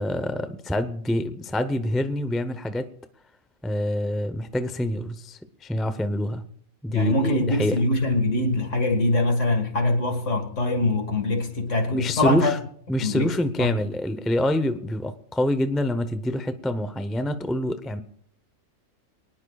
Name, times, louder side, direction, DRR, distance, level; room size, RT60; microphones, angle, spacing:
voice 1, 0.0-2.9 3.6-6.5 6.8-7.8 11.9-12.6 12.9-18.0, left 1 dB, ahead, 0.5 m, -26 dB
voice 2, 6.9-12.5 13.0-13.7, left 2 dB, 65° left, 2.1 m, -23 dB
23.5 x 19.0 x 2.4 m
omnidirectional pair, 1.4 m